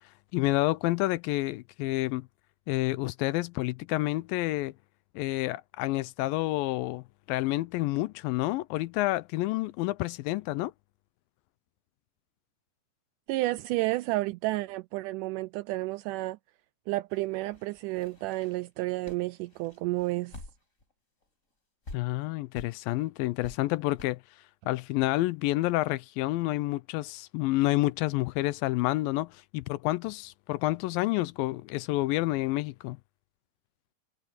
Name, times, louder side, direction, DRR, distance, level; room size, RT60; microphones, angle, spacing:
voice 1, 0.3-2.3 2.7-4.7 5.2-10.7 21.9-24.2 24.7-33.0, left 18 dB, 85° left, 2.3 m, -29 dB
voice 2, 13.3-16.4 16.9-20.4, right 19 dB, 85° right, 1.8 m, -31 dB
sound 1, 17.1-20.9 21.2-21.3 21.8-22.0 22.5-22.7 23.4-23.5 24.0-24.1, left 2 dB, 20° left, 5.9 m, -48 dB
omnidirectional pair, 4.1 m